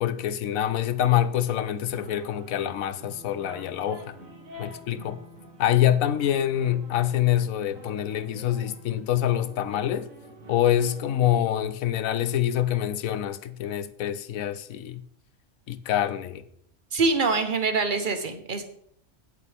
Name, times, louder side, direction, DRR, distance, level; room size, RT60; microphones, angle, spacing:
voice 1, 0.0-4.2 4.6-5.2 5.6-10.1 10.5-15.0 15.7-16.4, left 11 dB, 90° left, 1.1 m, -25 dB
sound 1, 1.9-11.4, right 1 dB, 80° right, 2.0 m, -47 dB
voice 2, 16.9-18.6, right 4 dB, 40° right, 1.2 m, -24 dB
17.0 x 6.6 x 3.5 m
omnidirectional pair, 1.4 m